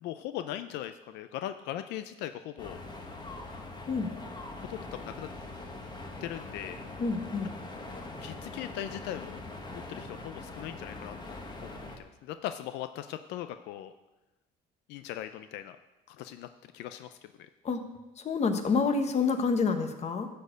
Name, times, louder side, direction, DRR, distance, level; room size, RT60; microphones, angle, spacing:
voice 1, 0.0-2.8 4.6-5.3 6.2-6.8 8.2-9.4 9.7-11.1 11.6-11.7 12.2-13.9 14.9-15.8 16.1-16.5 16.7-17.5, left 12 dB, 85° left, 10 dB, 0.5 m, -39 dB
Getaria beach, 2.6-12.0, left 2 dB, 25° left, 1.5 m, -42 dB
voice 2, 7.0-7.5 17.6-17.8 18.2-20.3, left 4 dB, 40° left, 7 dB, 1.2 m, -28 dB
12.5 x 4.4 x 8.0 m, 1.0 s
cardioid pair, 110°, 17 cm